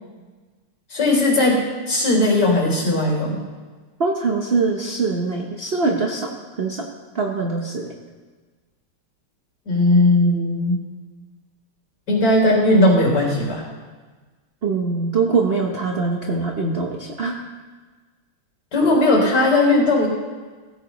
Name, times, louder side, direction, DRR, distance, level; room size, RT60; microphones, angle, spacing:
voice 1, 0.9-1.6 1.9-3.4 9.6-10.8 12.1-13.6 18.7-20.1, left 2 dB, 50° left, -2 dB, 4.1 m, -17 dB
voice 2, 4.0-6.8 7.1-7.9 14.6-17.4, right 4 dB, 45° right, 1 dB, 0.7 m, -23 dB
16.5 x 14.5 x 3.1 m, 1.4 s
omnidirectional pair, 2.4 m